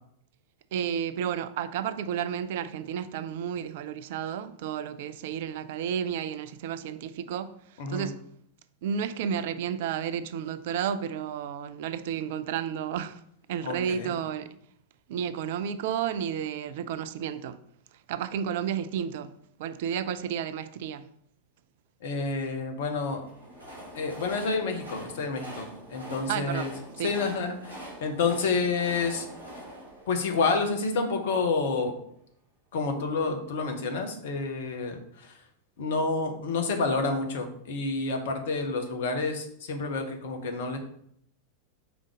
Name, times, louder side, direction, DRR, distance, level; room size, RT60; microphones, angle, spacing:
voice 1, 0.7-8.2 8.8-13.2 13.5-14.6 15.1-17.6 18.1-19.3 19.6-21.1 26.3-26.7 27.0-27.1, right 8 dB, 50° right, 0.3 m, -32 dB
voice 2, 7.8-8.1 13.6-14.2 22.0-23.2 23.9-26.7 27.0-29.3 30.1-32.0 32.7-35.3 35.8-40.8, left 4 dB, 55° left, 1.0 m, -29 dB
Train, 23.1-31.2, right 1 dB, 90° left, 2.5 m, -44 dB
5.1 x 3.6 x 5.0 m
figure-of-eight pair, 90°, 0 cm